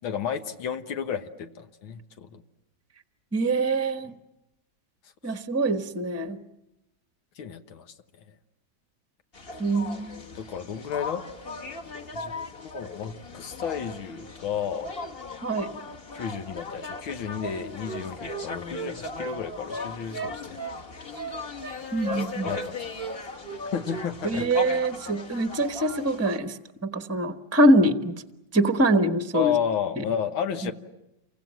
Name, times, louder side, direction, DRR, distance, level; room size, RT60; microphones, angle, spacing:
voice 1, 0.0-2.4 7.4-7.9 10.4-11.2 12.1-12.5 12.7-14.9 16.1-20.6 22.4-22.9 23.7-24.5 29.3-30.7, left 8 dB, 85° left, 7 dB, 2.0 m, -32 dB
voice 2, 3.3-4.1 5.2-6.4 9.6-10.2 15.4-15.7 21.9-22.5 24.2-26.6 26.8-28.1 28.5-29.5 30.0-30.1 30.6-30.7, right 1 dB, 10° right, 7 dB, 1.0 m, -24 dB
sound 1, 9.3-26.4, left 3 dB, 30° left, 1.4 m, -38 dB
Wind instrument woodwind instrument, 17.4-19.4 19.7-20.8 21.2-21.8 22.0-22.7 23.0-23.2 23.4-24.1 24.3-24.6, right 2 dB, 35° right, 0.8 m, -36 dB
29.0 x 25.0 x 7.6 m, 0.90 s
omnidirectional pair, 2.1 m